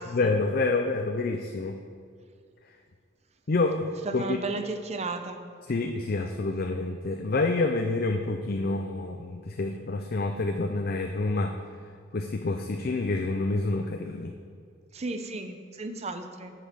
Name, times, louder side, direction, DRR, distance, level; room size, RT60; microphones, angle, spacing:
voice 1, 0.1-1.8 3.5-4.4 5.7-11.6 12.1-14.4, left 3 dB, 50° left, 4 dB, 0.5 m, -28 dB
voice 2, 4.0-5.4 14.9-16.5, right 3 dB, 35° right, 8 dB, 0.6 m, -34 dB
8.3 x 5.8 x 7.2 m, 2.1 s
head